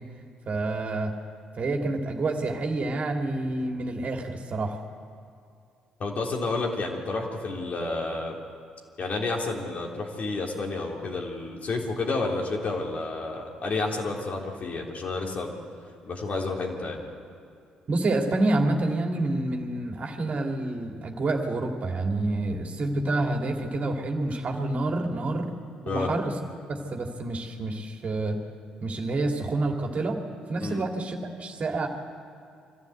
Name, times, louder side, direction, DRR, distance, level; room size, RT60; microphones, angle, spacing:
voice 1, 0.5-1.1 1.6-4.8 17.9-25.5 25.8-26.3 26.7-28.4 28.8-30.2 30.5-31.9, right 2 dB, 45° right, 2 dB, 2.8 m, -28 dB
voice 2, 6.0-8.4 9.0-15.6 16.1-17.0 25.9-26.1 30.6-30.8, left 3 dB, 50° left, 0 dB, 3.6 m, -30 dB
24.5 x 14.5 x 8.1 m, 2.4 s
hypercardioid pair, 45°, 3 cm